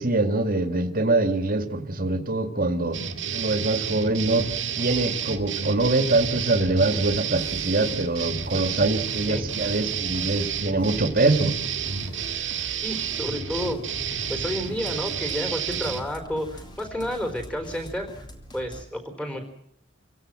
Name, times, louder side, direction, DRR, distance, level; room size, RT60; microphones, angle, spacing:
voice 1, 0.0-3.0 3.3-4.5 4.8-11.6, right 2 dB, 45° right, 7 dB, 2.2 m, -24 dB
sound 1, 2.9-16.1, right 7 dB, 70° right, 2.1 m, -30 dB
sound 2, 4.2-18.8, equal, 25° left, 3.2 m, -43 dB
voice 2, 12.8-13.8 14.3-18.2 18.5-19.4, equal, 5° left, 6 dB, 4.2 m, -31 dB
27.0 x 16.5 x 7.6 m, 0.75 s
head